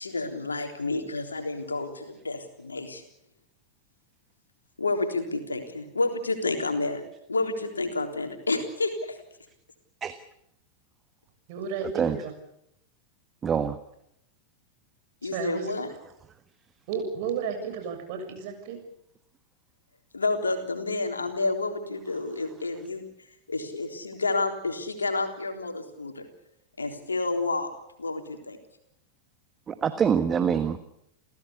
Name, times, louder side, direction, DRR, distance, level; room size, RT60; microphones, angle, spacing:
voice 1, 0.0-3.0 4.8-7.0 7.3-9.2 15.2-15.9 20.1-23.0 23.5-26.3 26.8-27.7 28.0-28.6, left 3 dB, 75° left, 5 dB, 3.6 m, -29 dB
voice 2, 11.5-12.3 15.3-15.7 16.9-18.8, right 6 dB, 50° right, 6 dB, 7.1 m, -33 dB
voice 3, 13.4-13.8 29.7-30.8, right 7 dB, 25° right, 11 dB, 1.4 m, -25 dB
30.0 x 16.0 x 8.4 m, 0.79 s
figure-of-eight pair, 90°, 0 cm